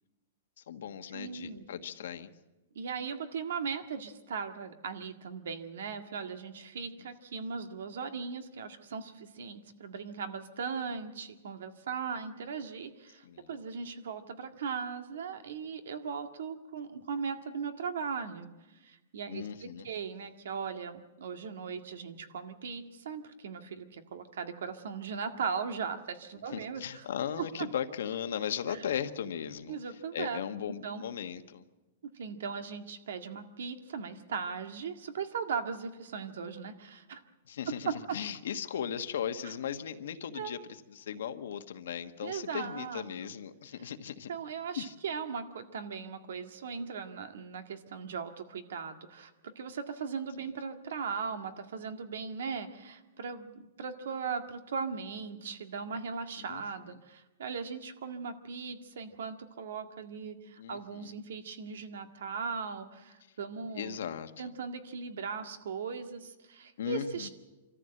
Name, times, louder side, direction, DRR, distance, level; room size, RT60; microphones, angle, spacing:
voice 1, 0.6-2.3 7.0-7.1 13.2-13.5 19.3-19.9 26.5-29.8 30.1-31.6 37.5-40.6 40.9-44.3 44.7-44.9 56.4-56.6 60.6-61.1 63.7-64.5 66.8-67.3, left 8 dB, 80° left, 8 dB, 1.3 m, -37 dB
voice 2, 1.1-1.7 2.8-27.1 27.4-27.7 29.7-30.4 30.8-31.0 32.1-37.2 37.9-38.2 40.3-40.5 42.2-43.3 44.3-64.0 64.4-67.3, right 5 dB, 80° right, 7 dB, 1.9 m, -38 dB
25.5 x 14.0 x 7.8 m, 1.1 s
hypercardioid pair, 160°, 0 cm